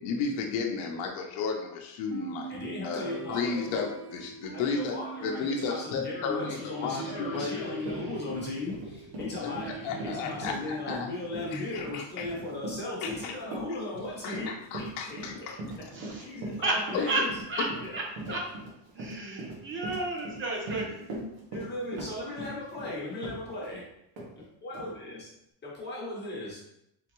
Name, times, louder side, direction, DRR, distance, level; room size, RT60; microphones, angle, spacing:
voice 1, 0.0-2.5 2.8-5.0 5.2-7.8 9.4-11.1 11.5-12.3 13.0-13.3 14.2-15.9 16.9-17.2 17.6-17.7, left 5 dB, 65° left, 1 dB, 0.7 m, -33 dB
sound 1, 2.1-6.8, right 5 dB, 75° right, 1.0 m, -42 dB
voice 2, 2.5-3.9 4.5-9.7 10.0-15.2 16.2-17.3 17.8-17.9 18.3-18.4 20.9-23.9 24.6-25.3 25.6-26.6, left 2 dB, 20° left, -4 dB, 0.7 m, -37 dB
sound 2, 6.1-12.5, right 3 dB, 50° right, 1.2 m, -43 dB
Run, 7.4-7.5 7.8-23.8 24.2-24.3 24.7-24.9, right 2 dB, 90° right, 1.4 m, -40 dB
voice 3, 15.9-16.7 17.1-17.2 17.5-17.7 17.9-18.0 18.3-18.4 19.0-21.0, right 3 dB, 25° right, -1 dB, 0.6 m, -32 dB
3.7 x 3.4 x 3.0 m, 0.80 s
cardioid pair, 175°, 50 cm